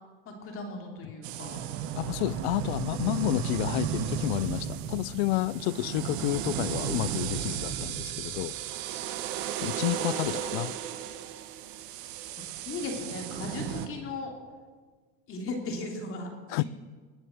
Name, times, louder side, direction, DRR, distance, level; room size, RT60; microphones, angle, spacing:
voice 1, 0.2-1.6 12.6-14.3 15.3-16.6, left 3 dB, 40° left, 3.0 m, -37 dB
sound 1, 1.2-13.9, right 9 dB, 60° right, 1.4 m, -34 dB
voice 2, 2.0-8.6 9.6-10.7 16.5-16.6, left 18 dB, 75° left, 0.6 m, -30 dB
20.5 x 7.6 x 7.8 m
supercardioid pair, 120°, 32 cm